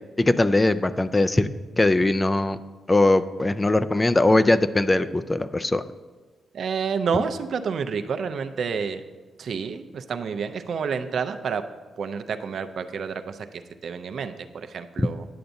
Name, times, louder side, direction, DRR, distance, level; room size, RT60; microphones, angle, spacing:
voice 1, 0.2-1.5 1.8-2.6 2.9-5.8, left 2 dB, 20° left, 12 dB, 0.3 m, -20 dB
voice 2, 6.5-9.0 9.4-11.6 12.0-13.5 13.8-15.2, right 6 dB, 65° right, 8 dB, 0.4 m, -29 dB
10.0 x 6.8 x 2.6 m, 1.3 s
cardioid pair, 70°, 0 cm